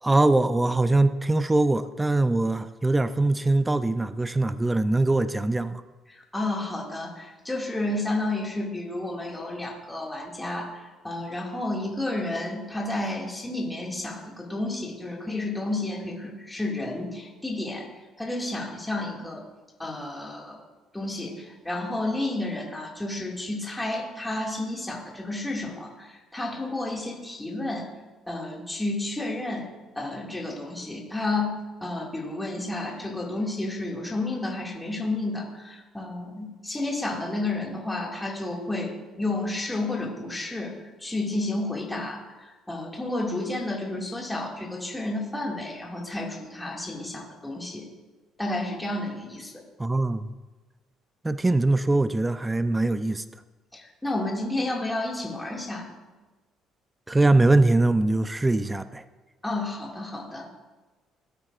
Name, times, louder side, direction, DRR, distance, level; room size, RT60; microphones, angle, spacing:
voice 1, 0.0-5.8 49.8-50.3 51.2-53.2 57.1-59.0, right 2 dB, 15° right, 0.5 m, -22 dB
voice 2, 6.1-17.9 18.2-19.4 19.8-20.6 20.9-27.9 28.3-29.7 30.0-40.7 41.0-42.3 42.7-47.9 48.4-49.6 53.7-55.9 59.4-60.5, left 2 dB, 10° left, 2.1 m, -31 dB
18.5 x 8.7 x 2.5 m
cardioid pair, 100°, 0 cm